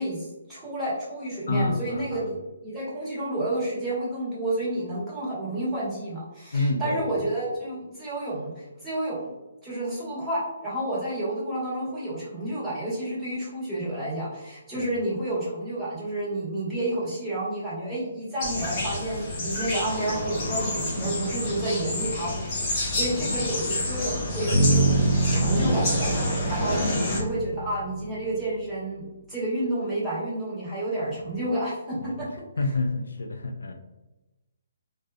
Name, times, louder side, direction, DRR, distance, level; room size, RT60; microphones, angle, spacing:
voice 1, 0.0-2.4 2.6-9.3 9.6-26.8 27.1-29.0 29.3-32.3, right 1 dB, 5° right, -11 dB, 1.3 m, -30 dB
voice 2, 1.5-2.3 6.5-7.3 14.7-15.0 22.9-23.2 26.8-27.1 31.0-31.1 32.0-32.1 32.6-33.7, left 2 dB, 75° left, 5 dB, 0.3 m, -29 dB
sound 1, 18.4-27.2, left 2 dB, 35° left, 1.0 m, -28 dB
Bass guitar, 24.5-28.5, right 3 dB, 35° right, 1.4 m, -25 dB
2.4 x 2.4 x 2.3 m, 1.0 s
figure-of-eight pair, 140°, 0 cm